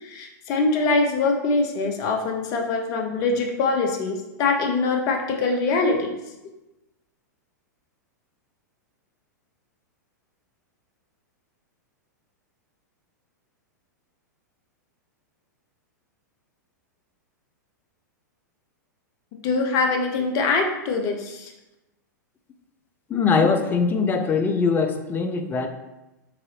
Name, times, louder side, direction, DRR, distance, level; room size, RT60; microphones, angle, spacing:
voice 1, 0.0-6.1 19.4-21.5, left 3 dB, 35° left, 3 dB, 0.8 m, -23 dB
voice 2, 23.1-25.7, left 5 dB, 20° left, 7 dB, 0.5 m, -22 dB
3.8 x 3.8 x 3.2 m, 0.99 s
figure-of-eight pair, 100°, 10 cm